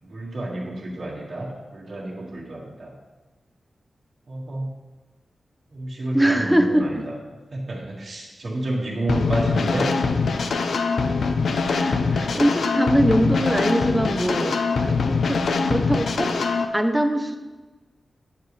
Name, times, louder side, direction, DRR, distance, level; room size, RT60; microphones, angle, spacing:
voice 1, 0.0-2.9 4.3-4.7 5.7-7.2 7.5-9.9 11.6-12.4, right 1 dB, 55° right, -5 dB, 1.8 m, -30 dB
voice 2, 6.1-6.9 11.7-14.6 14.9-16.4 16.7-17.4, right 1 dB, 5° right, 6 dB, 0.6 m, -22 dB
sound 1, 9.1-16.6, left 4 dB, 80° left, 0.5 m, -23 dB
9.3 x 6.7 x 3.2 m, 1.2 s
wide cardioid pair, 155°, 0 cm